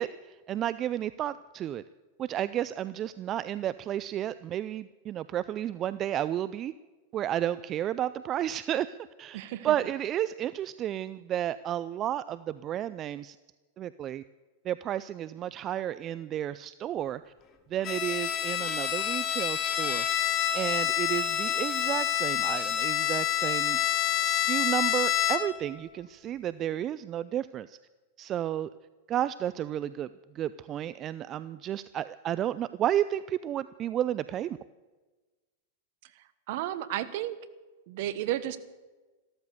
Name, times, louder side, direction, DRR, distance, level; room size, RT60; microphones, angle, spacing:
voice 1, 0.0-1.8 2.2-6.7 7.1-13.4 13.8-14.2 14.6-17.2 17.7-20.1 20.5-23.8 24.2-27.8 28.2-28.7 29.1-30.1 30.3-34.6, right 11 dB, 35° right, 16 dB, 0.4 m, -32 dB
voice 2, 9.3-9.7 36.1-37.4 37.9-38.6, right 13 dB, 60° right, 15 dB, 1.1 m, -33 dB
Bowed string instrument, 17.8-25.7, left 11 dB, 40° left, 1.7 m, -28 dB
14.0 x 13.5 x 6.8 m, 1.2 s
hypercardioid pair, 105°, 0 cm